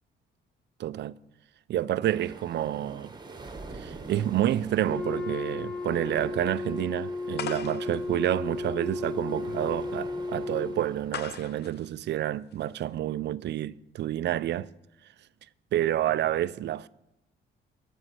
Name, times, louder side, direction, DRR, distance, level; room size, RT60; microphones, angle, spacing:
voice 1, 0.8-1.2 1.7-3.1 3.7-14.7 15.7-16.9, right 12 dB, 60° right, 0.4 m, -29 dB
sound 1, 2.0-11.4, right 3 dB, 20° right, 1.3 m, -45 dB
Wind instrument woodwind instrument, 4.8-10.9, left 3 dB, 5° left, 1.0 m, -34 dB
sound 2, 7.3-13.0, left 9 dB, 55° left, 0.6 m, -42 dB
14.0 x 5.3 x 7.9 m
cardioid pair, 90°, 20 cm